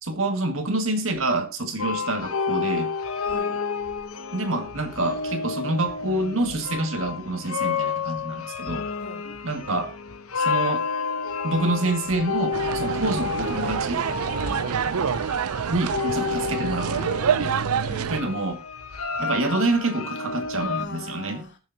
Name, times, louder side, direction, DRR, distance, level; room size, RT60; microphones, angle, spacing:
voice 1, 0.0-2.9 4.3-8.9 9.4-10.0 10.4-10.9 11.4-14.0 15.7-17.6 18.1-18.6 19.2-21.4, right 2 dB, 65° right, 1.9 m, -27 dB
sound 1, 1.8-20.9, left 5 dB, 75° left, 1.0 m, -30 dB
voice 2, 3.2-3.6 9.0-9.4 14.4-14.7 17.7-18.4 20.7-21.6, left 1 dB, 50° left, 2.9 m, -40 dB
sound 2, 12.5-18.2, right 7 dB, 80° right, 0.5 m, -27 dB
20.0 x 6.9 x 2.8 m
head